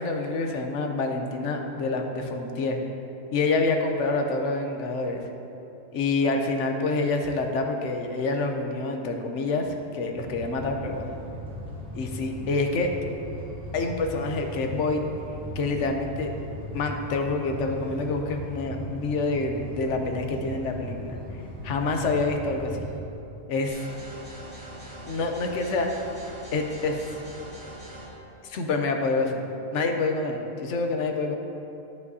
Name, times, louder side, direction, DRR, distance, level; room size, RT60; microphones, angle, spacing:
voice 1, 0.0-2.8 3.3-5.2 5.9-11.1 11.9-12.9 13.7-15.0 15.6-16.3 16.7-21.2 21.6-22.8 23.5-23.8 25.1-25.9 26.5-27.0 28.4-29.4 29.7-31.4, left 3 dB, 75° left, 4 dB, 1.0 m, -27 dB
sound 1, 10.2-23.0, equal, 5° left, 1.6 m, -38 dB
sound 2, 23.7-28.1, right 1 dB, 75° right, 1.9 m, -42 dB
12.5 x 5.3 x 2.7 m, 2.8 s
omnidirectional pair, 1.3 m